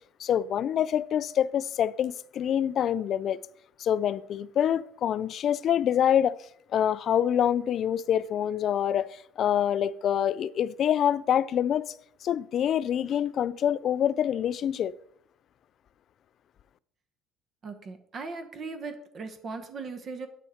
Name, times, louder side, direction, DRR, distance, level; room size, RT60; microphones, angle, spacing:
voice 1, 0.2-3.4 3.8-6.4 6.7-11.9 12.2-14.9, left 9 dB, 50° left, 0.3 m, -26 dB
voice 2, 17.6-20.3, right 4 dB, 40° right, 0.9 m, -38 dB
8.4 x 6.3 x 4.3 m
cardioid pair, 130°, 0 cm